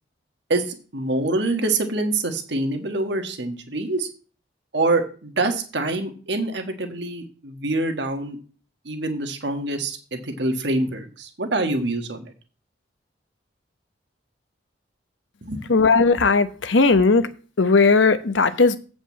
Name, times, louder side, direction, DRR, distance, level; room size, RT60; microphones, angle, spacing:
voice 1, 0.5-4.1 4.7-8.4 8.8-12.3 15.4-15.6, right 2 dB, 65° right, 1.5 m, -25 dB
voice 2, 15.7-17.3 17.6-18.8, left 4 dB, 85° left, 0.9 m, -17 dB
8.3 x 5.0 x 7.3 m
head